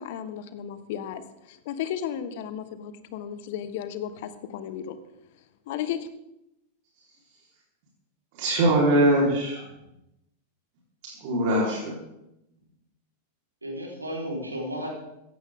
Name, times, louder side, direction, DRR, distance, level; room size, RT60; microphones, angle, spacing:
voice 1, 0.0-5.0 5.7-6.1, left 9 dB, 55° left, 12 dB, 1.4 m, -34 dB
voice 2, 2.8-3.2 9.8-9.9 13.6-14.9, equal, 90° right, -1 dB, 4.4 m, -35 dB
voice 3, 8.3-9.6 11.2-11.9, right 1 dB, 50° right, -4 dB, 4.4 m, -22 dB
16.0 x 14.5 x 3.8 m, 0.86 s
figure-of-eight pair, 90°, 0 cm